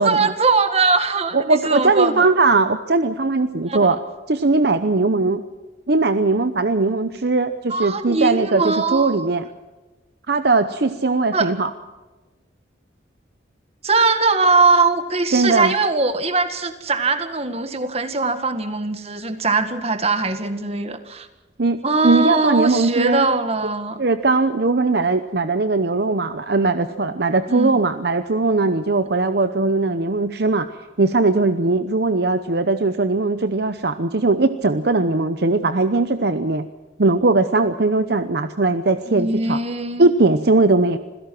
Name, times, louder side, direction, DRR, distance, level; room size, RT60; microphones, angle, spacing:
voice 1, 0.0-2.2 3.7-3.8 7.7-9.3 11.3-11.5 13.8-21.3 21.8-24.0 27.5-27.8 39.1-40.1, right 3 dB, 35° right, 9 dB, 1.8 m, -21 dB
voice 2, 1.3-4.0 4.3-5.4 5.9-9.5 10.3-11.7 15.3-15.8 21.6-21.8 22.0-23.3 24.0-36.6 37.0-39.6 40.0-41.0, right 3 dB, 60° right, 10 dB, 0.8 m, -19 dB
27.0 x 16.5 x 6.1 m, 1.2 s
head